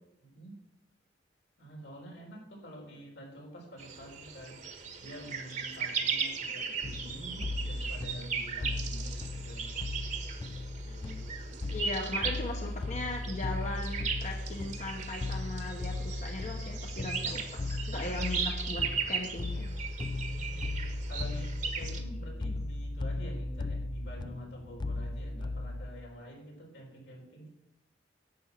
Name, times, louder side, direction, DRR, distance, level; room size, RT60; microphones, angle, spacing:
voice 1, 0.2-0.5 1.6-9.7 20.3-27.5, equal, 85° left, -1 dB, 4.2 m, -48 dB
sound 1, 3.8-22.0, right 6 dB, 45° right, 1.4 m, -37 dB
sound 2, 6.8-25.9, left 2 dB, 25° left, 0.4 m, -37 dB
voice 2, 11.5-19.7, left 2 dB, 40° left, 2 dB, 1.1 m, -39 dB
11.0 x 7.8 x 5.9 m, 0.84 s
head